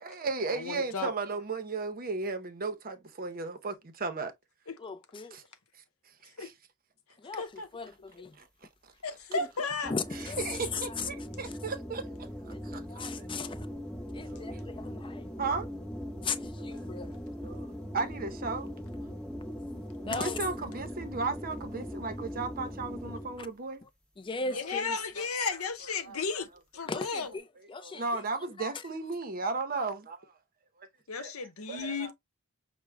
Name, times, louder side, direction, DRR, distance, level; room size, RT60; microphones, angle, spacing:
voice 1, 0.0-4.3 5.3-5.4 6.2-6.5 8.4-8.5 8.8-8.9 10.5-12.8 13.2-13.3 14.3-14.6 15.4-15.7 17.4-18.7 20.0-23.8 25.2-25.3 26.0-26.2 27.8-30.3 30.8-30.9 31.2-31.3 31.7-32.1, right 4 dB, 45° right, 0.7 m, -35 dB
voice 2, 0.5-1.1 6.4-6.5 7.4-7.7 9.0-9.9 24.5-26.5 26.7-27.3 31.1-32.1, left 4 dB, 75° left, 0.8 m, -34 dB
voice 3, 4.8-5.4 7.2-8.4 9.3-11.1 11.4-11.5 12.5-13.7 14.1-15.3 16.2-17.2 20.0-20.5 23.4-23.5 23.8-23.9 24.2-25.0 26.8-28.2 28.6-28.8, left 4 dB, 25° left, 0.4 m, -38 dB
sound 1, 9.8-23.5, equal, 5° left, 0.9 m, -40 dB
5.9 x 2.1 x 3.3 m
head